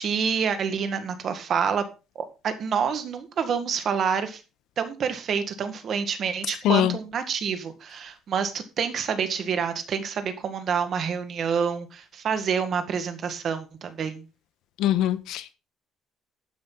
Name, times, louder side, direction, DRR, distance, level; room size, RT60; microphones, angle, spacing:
voice 1, 0.0-1.8 2.1-4.4 4.8-14.2, right 6 dB, 40° right, 1.8 m, -27 dB
voice 2, 14.8-15.5, left 12 dB, 70° left, 1.2 m, -22 dB
12.0 x 9.8 x 4.0 m
cardioid pair, 175°, 0 cm